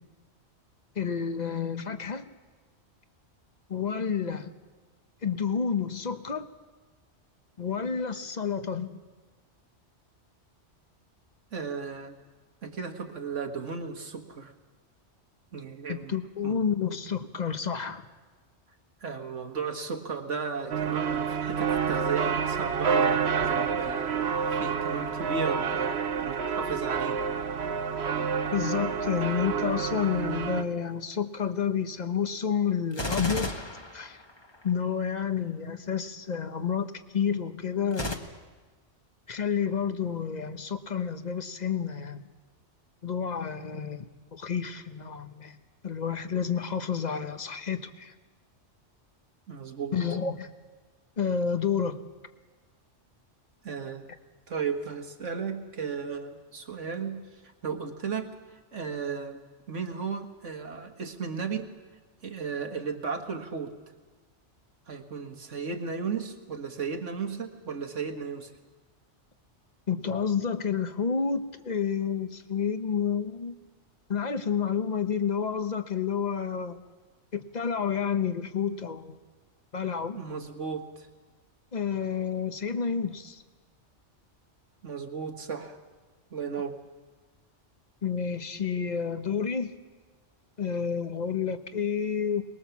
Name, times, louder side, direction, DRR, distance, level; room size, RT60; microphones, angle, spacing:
voice 1, 1.0-2.3 3.7-4.5 5.2-6.5 7.6-9.0 15.9-18.1 28.5-33.5 33.9-34.2 34.6-38.2 39.3-42.3 43.0-45.6 45.8-48.1 49.9-50.6 51.2-52.0 69.9-73.6 74.1-76.8 77.3-79.2 79.7-80.2 81.7-83.4 88.0-89.7 90.6-92.4, left 7 dB, 40° left, 9 dB, 1.1 m, -30 dB
voice 2, 11.5-12.2 12.6-14.5 15.5-16.1 16.4-16.6 19.0-27.2 49.5-50.0 53.6-54.1 54.5-61.7 62.2-63.8 64.9-68.5 80.1-81.1 84.8-85.8 86.3-86.8, right 5 dB, 80° right, 4 dB, 2.1 m, -35 dB
sound 1, 20.7-30.6, right 6 dB, 60° right, 1.2 m, -28 dB
Gunshot gunfire, 32.9-34.7 37.9-38.1, left 1 dB, 20° left, 1.5 m, -33 dB
23.0 x 20.5 x 7.2 m, 1.4 s
omnidirectional pair, 1.2 m